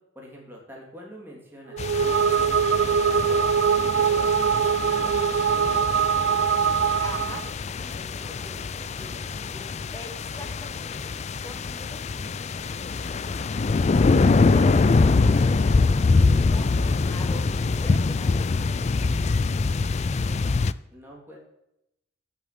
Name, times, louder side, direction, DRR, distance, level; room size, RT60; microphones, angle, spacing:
voice 1, 0.1-3.4 3.7-7.4 7.8-9.7 20.2-20.7 20.9-21.4, equal, 10° right, -2 dB, 3.3 m, -46 dB
sound 1, 1.7-7.5, right 7 dB, 60° right, 0.3 m, -22 dB
sound 2, 1.8-20.7, left 3 dB, 35° left, 0.4 m, -24 dB
voice 2, 7.0-7.4 9.9-13.2 13.9-16.7 17.1-18.5 19.0-19.3, left 2 dB, 15° left, 6 dB, 1.3 m, -43 dB
8.7 x 7.3 x 8.6 m, 0.84 s
head